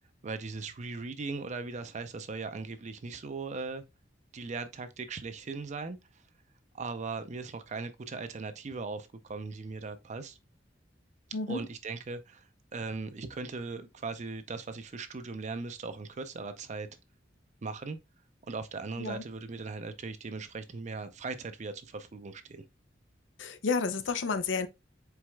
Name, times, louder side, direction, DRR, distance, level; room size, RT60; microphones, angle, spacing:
voice 1, 0.2-3.8 4.3-6.0 6.7-10.4 11.5-16.9 17.6-18.0 18.5-22.6, right 4 dB, 40° right, 0.5 m, -39 dB
voice 2, 11.3-11.7 19.0-19.2 23.4-24.7, left 4 dB, 85° left, 0.5 m, -31 dB
4.6 x 4.2 x 2.3 m
head